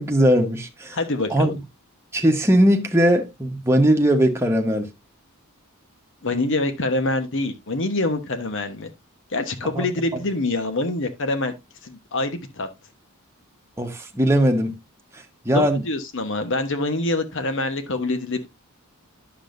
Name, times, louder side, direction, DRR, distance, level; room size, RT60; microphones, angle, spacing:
voice 1, 0.0-1.0 1.3-1.6 2.1-4.9 9.7-9.9 13.8-14.8 15.4-15.8, equal, 10° right, 1.2 m, -19 dB
voice 2, 0.9-1.5 6.2-8.9 9.3-11.5 11.8-12.7 15.5-18.5, left 2 dB, 60° left, 1.1 m, -25 dB
9.8 x 6.9 x 2.6 m
head